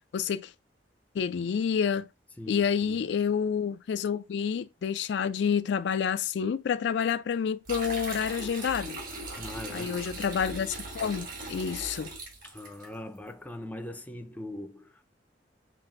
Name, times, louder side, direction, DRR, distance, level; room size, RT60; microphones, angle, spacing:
voice 1, 0.1-0.5 1.1-2.1 2.5-9.0 9.7-12.1, left 7 dB, 70° left, 0.3 m, -29 dB
voice 2, 2.4-3.0 9.4-10.0 12.4-15.0, left 1 dB, 10° left, 0.5 m, -41 dB
sound 1, 7.7-12.9, right 2 dB, 50° right, 2.5 m, -39 dB
7.5 x 2.6 x 2.4 m
head